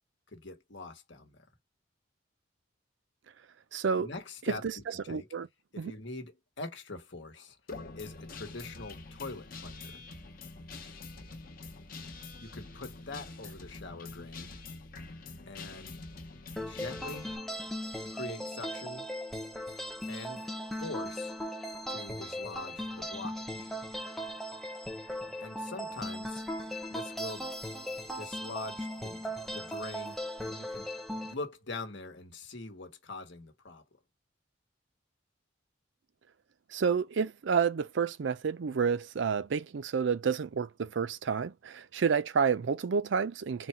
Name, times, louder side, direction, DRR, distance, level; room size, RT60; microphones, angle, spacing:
voice 1, 0.3-1.4 3.9-5.3 5.7-7.6 8.0-10.0 12.4-14.5 15.5-16.0 16.7-17.3 18.1-19.1 20.1-20.4 20.8-21.3 21.9-23.7 25.4-26.4 26.9-27.5 28.1-30.2 30.4-30.9 31.2-33.8, left 3 dB, 65° left, 1.2 m, -43 dB
voice 2, 3.7-4.1 4.6-4.7 5.1-5.5 5.8-5.9 36.7-43.7, right 6 dB, 65° right, 0.4 m, -29 dB
Guitar, 7.7-17.4, left 3 dB, 50° left, 0.9 m, -45 dB
sound 1, 16.6-31.3, equal, ahead, 0.6 m, -38 dB
4.0 x 2.2 x 4.3 m
head